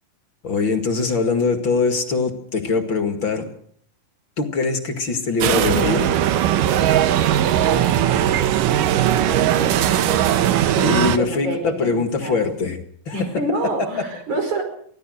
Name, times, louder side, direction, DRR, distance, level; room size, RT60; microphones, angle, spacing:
voice 1, 0.4-3.5 4.4-6.2 10.7-13.2 13.8-14.0, left 4 dB, 40° left, 6 dB, 2.4 m, -22 dB
sound 1, 5.4-11.2, right 11 dB, 75° right, 2.6 m, -18 dB
voice 2, 7.5-8.4 9.0-10.0 10.7-12.4 13.1-14.6, right 2 dB, 60° right, 5 dB, 6.4 m, -28 dB
24.5 x 17.0 x 6.5 m, 0.63 s
omnidirectional pair, 3.8 m